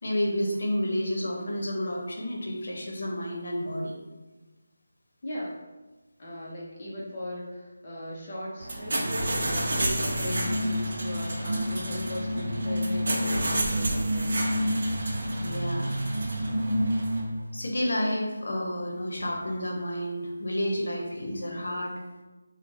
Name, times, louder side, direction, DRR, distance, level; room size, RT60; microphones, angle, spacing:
voice 1, 0.0-3.9 15.4-15.9 17.5-21.9, equal, 70° left, 0 dB, 0.8 m, -30 dB
voice 2, 5.2-5.6 6.2-14.4, left 1 dB, 35° left, -5 dB, 0.6 m, -38 dB
sound 1, 8.6-17.2, right 1 dB, 55° right, 0.6 m, -32 dB
sound 2, 9.0-17.6, equal, 85° right, 0.4 m, -30 dB
4.3 x 2.1 x 2.7 m, 1.2 s
figure-of-eight pair, 170°, 0 cm